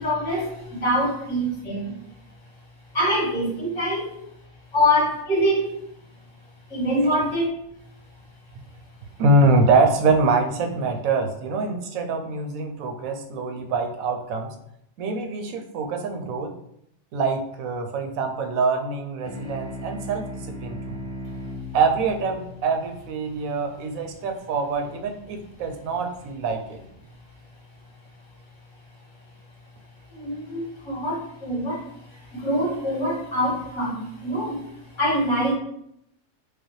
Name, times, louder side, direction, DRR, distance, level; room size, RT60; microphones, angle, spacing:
voice 1, 0.0-1.9 2.9-4.2 4.7-5.8 6.7-7.5 30.1-35.5, equal, 60° left, -6 dB, 2.1 m, -25 dB
voice 2, 9.2-14.5 15.0-16.5 17.1-21.0 21.7-26.8, right 3 dB, 80° right, 4 dB, 1.0 m, -24 dB
sound 1, 19.2-24.1, left 1 dB, 5° left, 0.5 m, -37 dB
4.9 x 2.2 x 3.1 m, 0.74 s
omnidirectional pair, 1.5 m